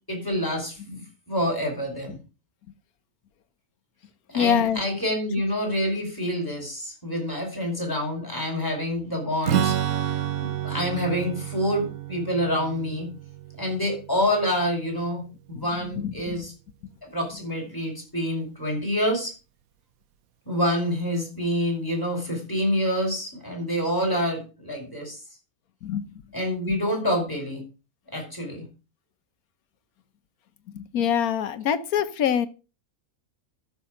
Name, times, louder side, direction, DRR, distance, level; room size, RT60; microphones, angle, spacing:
voice 1, 0.1-2.2 4.3-10.1 10.4-13.1 13.6-16.5 17.0-19.3 20.5-25.2 26.3-27.6 28.1-28.6, equal, 15° left, -1 dB, 4.9 m, -27 dB
voice 2, 4.3-4.8 15.6-16.4 25.8-26.1 30.7-32.5, left 8 dB, 90° left, 11 dB, 1.3 m, -25 dB
Strum, 9.4-15.1, right 11 dB, 75° right, 1.2 m, -30 dB
13.0 x 6.9 x 4.9 m, 0.33 s
omnidirectional pair, 1.5 m